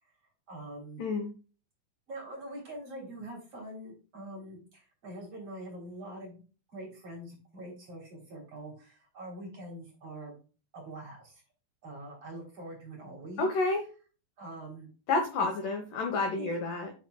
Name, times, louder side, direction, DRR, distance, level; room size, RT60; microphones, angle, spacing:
voice 1, 0.5-1.0 2.1-6.4 6.7-10.4 10.7-11.4 11.8-13.5 14.4-14.9 15.4-15.5 16.4-16.6, right 1 dB, 35° right, -2 dB, 3.2 m, -44 dB
voice 2, 1.0-1.3 13.4-13.8 15.1-16.9, left 3 dB, 75° left, 4 dB, 1.9 m, -29 dB
9.2 x 6.4 x 2.3 m, 0.35 s
omnidirectional pair, 5.6 m